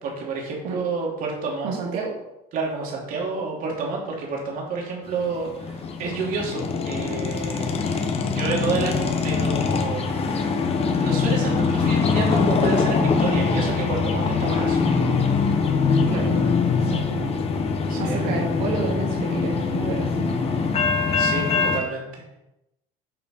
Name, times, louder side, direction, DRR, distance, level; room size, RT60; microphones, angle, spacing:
voice 1, 0.0-1.8 2.5-7.7 8.2-10.4 11.0-14.9 17.9-18.3 21.2-22.4, right 4 dB, 50° right, -2 dB, 2.8 m, -29 dB
voice 2, 1.6-2.1 16.1-16.3 16.9-17.3 18.0-20.3, right 5 dB, 80° right, -3 dB, 2.2 m, -30 dB
sound 1, 5.1-21.8, left 5 dB, 35° left, 1.2 m, -23 dB
8.8 x 5.1 x 5.4 m, 0.89 s
cardioid pair, 140°, 18 cm